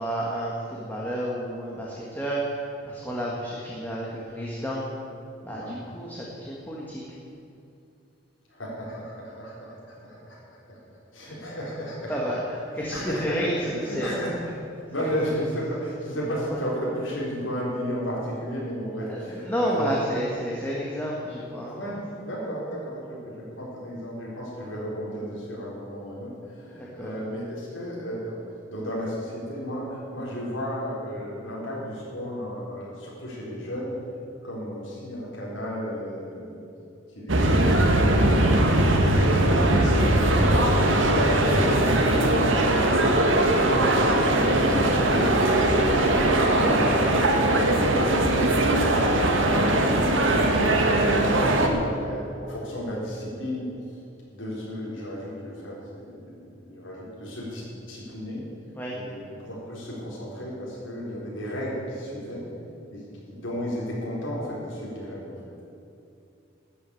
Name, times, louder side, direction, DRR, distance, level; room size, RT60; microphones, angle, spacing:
voice 1, 0.0-4.9 5.4-7.0 12.1-14.3 15.0-15.1 16.5-16.6 19.1-21.8 26.7-27.2 40.8-40.9 58.7-59.0, equal, 10° left, -4 dB, 1.6 m, -31 dB
voice 2, 8.5-12.4 12.8-13.4 13.8-14.6 14.9-20.0 21.6-28.4 28.7-34.0 34.4-36.6 37.1-40.6 41.0-44.4 44.8-46.9 47.3-53.7 54.3-58.5 58.9-62.5 62.9-65.4, equal, 85° left, -6 dB, 4.2 m, -34 dB
sound 1, 37.3-51.7, right 1 dB, 85° right, 1.6 m, -20 dB
13.5 x 8.6 x 8.5 m, 2.6 s
head